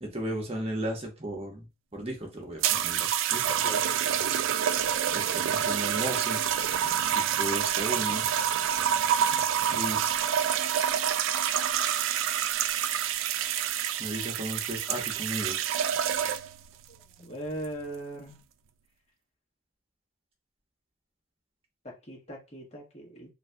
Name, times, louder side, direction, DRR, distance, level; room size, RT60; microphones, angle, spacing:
voice 1, 0.0-3.4 5.1-6.4 7.0-8.3 9.7-10.1 14.0-15.6, right 1 dB, 30° right, 0.9 m, -35 dB
sound 1, 2.6-16.6 17.5-17.8, right 9 dB, 80° right, 0.3 m, -27 dB
voice 2, 3.5-3.8 16.9-18.4 21.8-23.3, right 1 dB, 30° left, 1.2 m, -40 dB
4.0 x 2.6 x 2.2 m
head